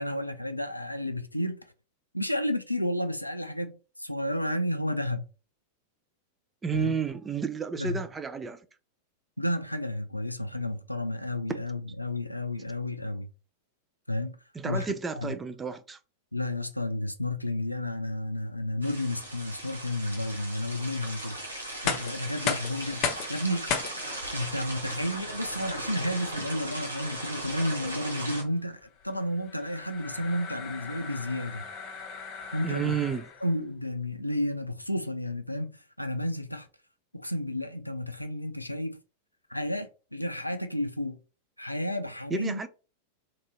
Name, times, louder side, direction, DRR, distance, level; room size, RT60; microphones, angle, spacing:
voice 1, 0.0-1.6 2.1-3.7 4.0-5.2 6.7-6.9 7.8-8.0 9.4-13.3 14.1-14.4 14.6-14.9 15.2-15.3 16.3-21.4 21.8-23.7 24.3-31.6 32.5-33.0 33.4-36.7 37.1-39.0 39.5-41.2 41.6-42.6, left 1 dB, 90° left, 0.4 m, -31 dB
voice 2, 6.6-8.6 14.5-16.0 32.6-33.3 42.3-42.7, right 6 dB, 15° right, 0.4 m, -31 dB
sound 1, 18.8-28.4, right 1 dB, 85° right, 0.8 m, -37 dB
sound 2, 21.7-33.6, left 6 dB, 40° left, 0.7 m, -37 dB
2.9 x 2.6 x 2.9 m
figure-of-eight pair, 90°, 0 cm